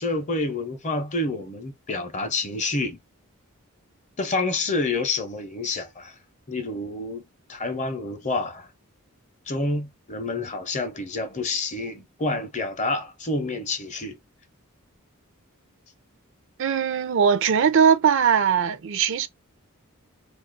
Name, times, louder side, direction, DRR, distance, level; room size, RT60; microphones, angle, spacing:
voice 1, 0.0-3.0 4.2-6.1 6.5-7.2 7.5-8.7 9.5-14.2, left 2 dB, 30° left, 0.7 m, -28 dB
voice 2, 16.6-19.3, right 7 dB, 60° right, 0.4 m, -20 dB
2.7 x 2.4 x 3.7 m
head